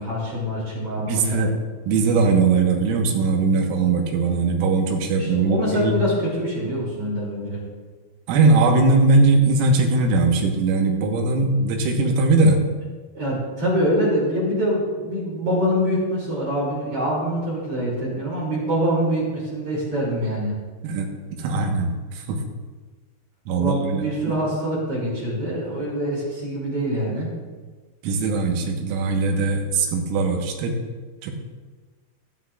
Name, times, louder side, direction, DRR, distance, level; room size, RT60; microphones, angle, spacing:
voice 1, 0.0-1.4 5.2-7.6 13.1-20.6 23.5-27.3, equal, 35° right, -5 dB, 2.9 m, -25 dB
voice 2, 1.1-1.5 1.9-6.0 8.3-12.6 20.8-21.1 21.4-22.4 23.5-24.0 28.0-30.7 31.2-31.3, right 3 dB, 90° right, 2 dB, 3.9 m, -20 dB
21.0 x 7.8 x 2.4 m, 1.4 s
omnidirectional pair, 5.8 m